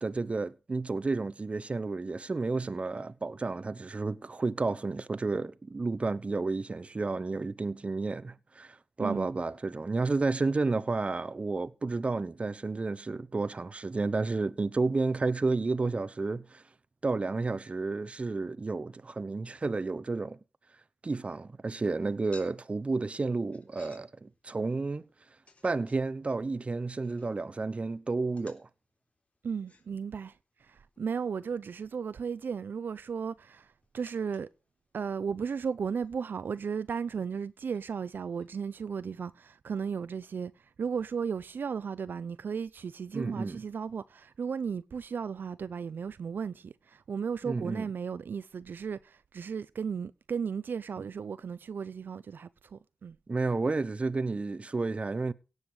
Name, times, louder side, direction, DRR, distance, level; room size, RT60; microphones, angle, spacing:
voice 1, 0.0-16.6 17.0-20.4 21.0-25.0 25.6-28.7 43.1-43.6 47.4-47.9 53.3-55.3, right 3 dB, 35° right, 0.9 m, -31 dB
sound 1, 21.7-38.5, left 3 dB, 40° left, 3.6 m, -63 dB
voice 2, 29.4-34.5 34.9-53.2, right 6 dB, 70° right, 0.6 m, -35 dB
17.0 x 8.1 x 4.9 m
wide cardioid pair, 85°, 4 cm